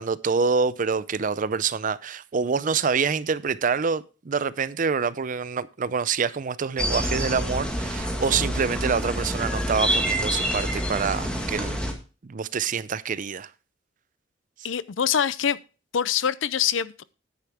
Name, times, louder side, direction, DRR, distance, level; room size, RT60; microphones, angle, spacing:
voice 1, 0.0-11.8 12.2-13.5, right 5 dB, 45° right, 0.5 m, -26 dB
sound 1, 6.8-11.9, equal, 5° left, 1.9 m, -27 dB
voice 2, 14.6-15.6 15.9-17.0, left 8 dB, 85° left, 0.5 m, -24 dB
10.0 x 9.4 x 3.5 m
head